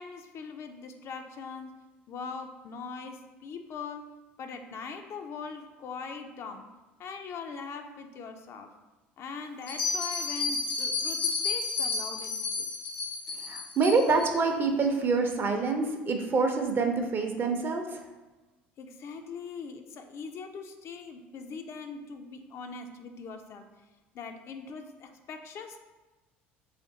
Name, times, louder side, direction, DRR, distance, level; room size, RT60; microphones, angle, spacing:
voice 1, 0.0-1.7 2.1-4.1 4.4-6.7 7.0-8.7 9.2-12.7 18.8-23.7 24.1-25.8, left 5 dB, 50° left, 5 dB, 0.4 m, -41 dB
Bell, 9.6-14.3, left 4 dB, 85° left, 0.7 m, -31 dB
voice 2, 13.4-18.0, right 4 dB, 40° right, 4 dB, 0.5 m, -26 dB
3.3 x 2.5 x 3.9 m, 1.1 s
hypercardioid pair, 65°, 6 cm